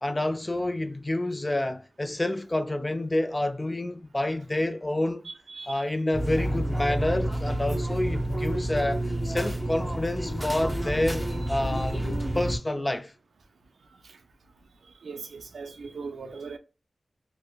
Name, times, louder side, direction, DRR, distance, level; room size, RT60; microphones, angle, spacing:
voice 1, 0.0-5.3 5.7-12.1 12.3-13.1, left 1 dB, 30° left, 0.4 m, -28 dB
sound 1, 6.1-12.6, right 1 dB, 5° left, 0.8 m, -29 dB
voice 2, 15.0-16.6, right 4 dB, 90° right, 0.4 m, -39 dB
3.1 x 2.0 x 2.2 m
cardioid pair, 40°, 0 cm